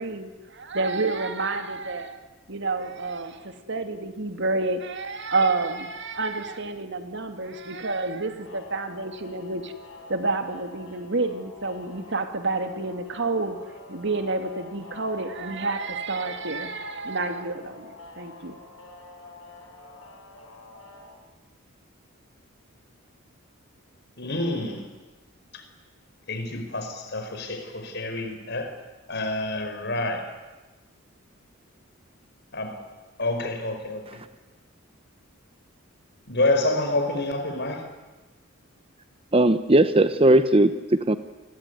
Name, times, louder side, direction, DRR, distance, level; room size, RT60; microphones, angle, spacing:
voice 1, 0.0-2.2 2.5-9.7 10.1-13.6 13.9-18.6, right 3 dB, 55° right, 7 dB, 2.5 m, -29 dB
sound 1, 8.4-21.1, left 3 dB, 80° left, 7.1 m, -46 dB
voice 2, 24.2-24.9 25.5-25.6 26.3-28.7 29.1-30.3 32.5-32.8 33.2-34.2 36.3-37.9, left 2 dB, 55° left, 7 dB, 4.8 m, -28 dB
voice 3, 39.3-41.2, right 1 dB, 25° right, 11 dB, 0.9 m, -18 dB
29.5 x 21.0 x 9.4 m, 1.2 s
head